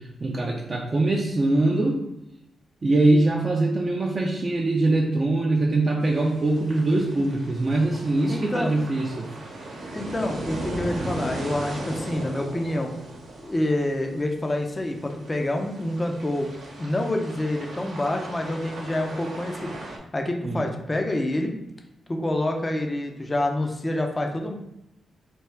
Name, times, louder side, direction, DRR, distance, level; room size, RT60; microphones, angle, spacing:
voice 1, 0.0-2.0 2.8-9.3 20.4-20.7, right 2 dB, 35° right, 0 dB, 0.5 m, -23 dB
sound 1, 6.0-20.0, right 2 dB, 75° right, 0.9 m, -38 dB
voice 2, 8.3-8.7 9.9-12.9 13.4-16.5 16.8-19.7 20.1-21.5 22.1-24.5, left 1 dB, 20° left, 3 dB, 0.5 m, -27 dB
3.3 x 2.5 x 4.4 m, 0.85 s
cardioid pair, 120°, 0 cm